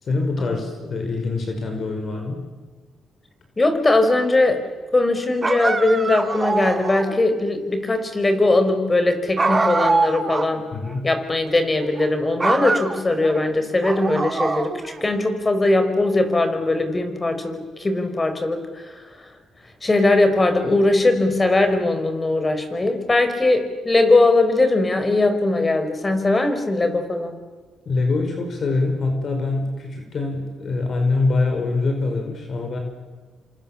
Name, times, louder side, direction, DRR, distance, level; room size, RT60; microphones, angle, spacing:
voice 1, 0.0-2.5 10.7-11.1 27.9-32.8, left 3 dB, 50° left, 4 dB, 5.3 m, -24 dB
voice 2, 3.6-4.6 4.9-10.6 11.0-19.0 19.8-27.3, left 2 dB, 25° left, 9 dB, 4.7 m, -20 dB
sound 1, 5.4-7.2 9.4-10.5 10.9-11.0 11.8-12.1 12.4-13.4 13.8-15.0, right 3 dB, 25° right, 2.4 m, -23 dB
28.5 x 26.5 x 7.3 m, 1.4 s
cardioid pair, 90°, 0 cm